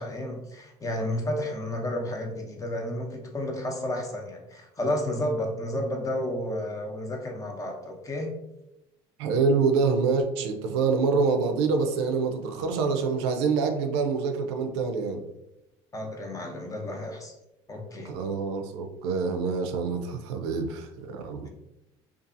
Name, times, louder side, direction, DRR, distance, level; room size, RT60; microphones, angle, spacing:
voice 1, 0.0-8.3 15.9-17.3 17.7-18.1 21.4-21.5, left 1 dB, 25° left, 2 dB, 0.6 m, -31 dB
voice 2, 9.2-15.2 18.0-21.5, right 4 dB, 90° right, 5 dB, 0.4 m, -26 dB
2.6 x 2.4 x 2.5 m, 0.89 s
supercardioid pair, 80°, 13 cm